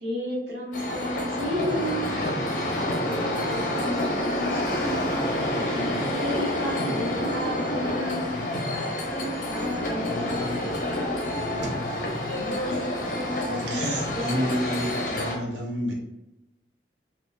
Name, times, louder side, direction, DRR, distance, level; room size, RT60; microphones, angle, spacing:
voice 1, 0.0-2.2 6.2-8.4 12.3-14.6, equal, 65° right, -4 dB, 1.2 m, -32 dB
sound 1, 0.7-15.4, left 1 dB, 45° left, 0.6 m, -28 dB
voice 2, 2.8-5.3 9.1-11.3, left 1 dB, 5° left, -4 dB, 0.6 m, -35 dB
voice 3, 13.7-15.9, equal, 90° right, -2 dB, 1.0 m, -30 dB
4.1 x 2.4 x 2.5 m, 0.92 s
head